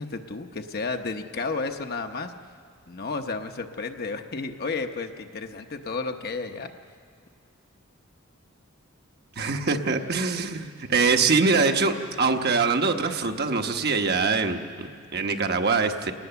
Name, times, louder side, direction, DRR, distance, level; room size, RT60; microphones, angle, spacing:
voice 1, 0.0-2.3 2.9-6.7, left 4 dB, 50° left, 5 dB, 0.9 m, -32 dB
voice 2, 9.4-16.1, right 4 dB, 50° right, 5 dB, 1.1 m, -24 dB
28.5 x 19.5 x 6.9 m, 2.2 s
head